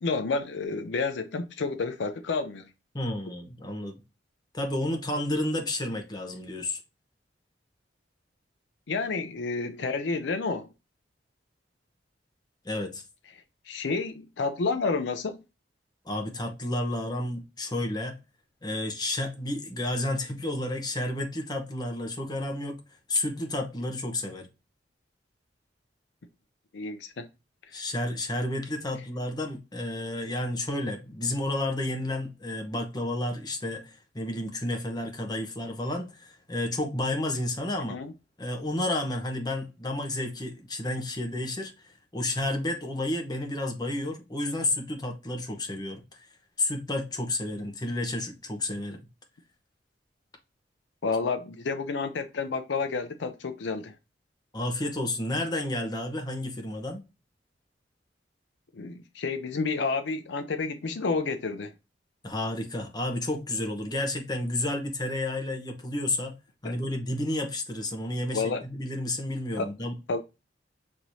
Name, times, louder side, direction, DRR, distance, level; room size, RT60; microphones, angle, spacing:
voice 1, 0.0-2.7 8.9-10.7 13.7-15.4 26.7-27.3 27.7-27.8 37.9-38.1 51.0-53.9 58.7-61.7 66.6-66.8 68.3-68.6 69.6-69.7 70.1-70.2, left 4 dB, 75° left, 0.5 m, -30 dB
voice 2, 2.9-3.9 4.5-6.8 12.6-13.0 16.0-18.2 18.6-22.8 23.1-24.5 27.7-38.0 38.4-46.0 46.6-49.0 54.5-57.0 62.2-66.4 66.6-69.9, left 1 dB, 25° left, 0.9 m, -31 dB
6.4 x 3.0 x 2.6 m
head